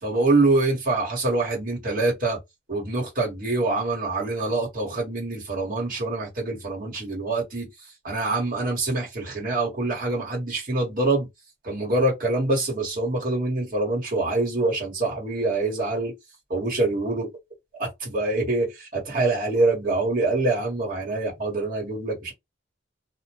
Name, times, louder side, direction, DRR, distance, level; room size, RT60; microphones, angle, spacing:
voice 1, 0.0-2.4 2.7-7.7 8.0-11.3 11.6-16.1 16.5-17.3 17.8-22.3, right 2 dB, 45° right, 1.4 m, -25 dB
2.5 x 2.1 x 3.0 m
head